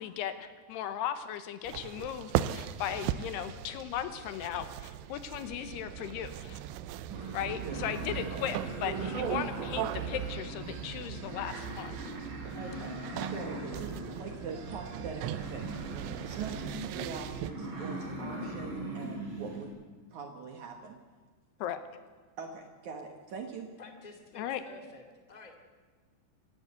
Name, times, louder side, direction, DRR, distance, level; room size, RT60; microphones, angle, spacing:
voice 1, 0.0-6.6 7.3-11.9 21.6-21.8 24.4-24.6, left 10 dB, 75° left, 11 dB, 2.9 m, -37 dB
sound 1, 1.7-17.5, right 12 dB, 90° right, 3.0 m, -38 dB
sound 2, 7.1-19.7, right 1 dB, 30° right, 4.4 m, -40 dB
voice 2, 12.5-19.7 20.1-21.0 22.4-23.8, right 5 dB, 65° right, 4 dB, 2.0 m, -43 dB
voice 3, 23.8-25.5, left 2 dB, 20° left, 4 dB, 1.0 m, -51 dB
26.5 x 12.0 x 8.2 m, 1.5 s
omnidirectional pair, 5.0 m